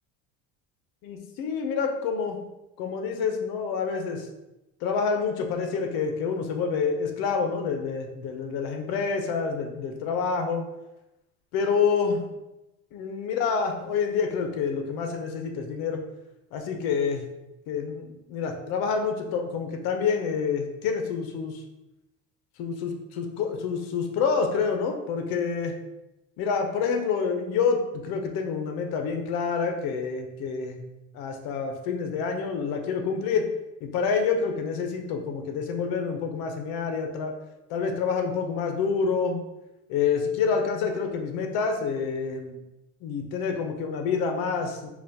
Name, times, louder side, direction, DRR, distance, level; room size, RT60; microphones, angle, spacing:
voice 1, 1.0-2.4 2.8-4.3 4.8-10.6 11.5-12.2 12.9-16.0 16.5-17.3 17.7-21.6 22.6-25.7 26.4-27.8 28.0-30.8 31.1-33.4 33.8-37.3 37.7-39.4 39.9-42.6 43.0-44.9, left 5 dB, 65° left, 4 dB, 0.8 m, -27 dB
5.4 x 2.5 x 2.8 m, 0.95 s
cardioid pair, 130°, 38 cm